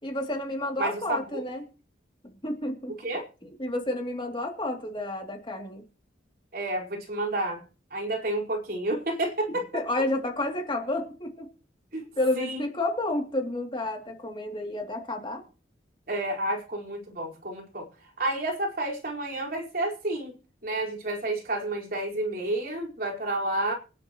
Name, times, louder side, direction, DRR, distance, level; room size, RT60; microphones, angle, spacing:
voice 1, 0.0-1.6 2.4-2.9 3.4-5.8 9.7-11.5 12.2-15.4, left 1 dB, 25° left, 2 dB, 2.8 m, -30 dB
voice 2, 0.8-1.4 3.0-3.2 6.5-7.6 7.9-9.8 11.9-12.0 12.4-12.6 16.1-17.9 18.2-20.3 20.6-23.7, right 1 dB, 50° right, 0 dB, 4.8 m, -30 dB
24.0 x 10.5 x 3.1 m, 0.35 s
head